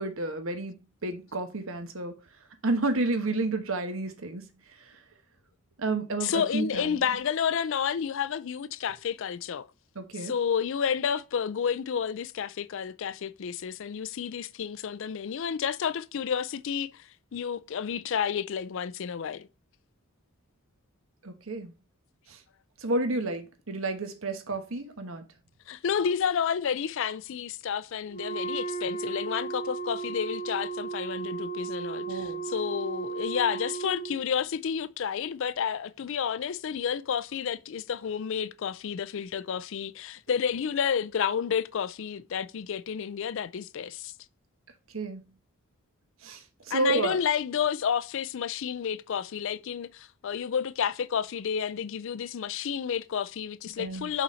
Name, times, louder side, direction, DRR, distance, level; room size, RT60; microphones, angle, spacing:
voice 1, 0.0-2.2 2.6-5.0 5.8-7.0 9.9-10.3 21.2-21.7 22.3-22.4 22.8-25.3 32.1-32.4 44.9-45.2 46.2-47.2 53.8-54.1, right 2 dB, 65° right, 1.2 m, -31 dB
voice 2, 6.2-9.7 10.2-19.5 25.7-44.1 46.7-54.2, left 7 dB, 60° left, 0.4 m, -30 dB
Wind instrument woodwind instrument, 28.1-34.2, right 4 dB, 30° left, 1.2 m, -35 dB
5.6 x 4.2 x 4.2 m
head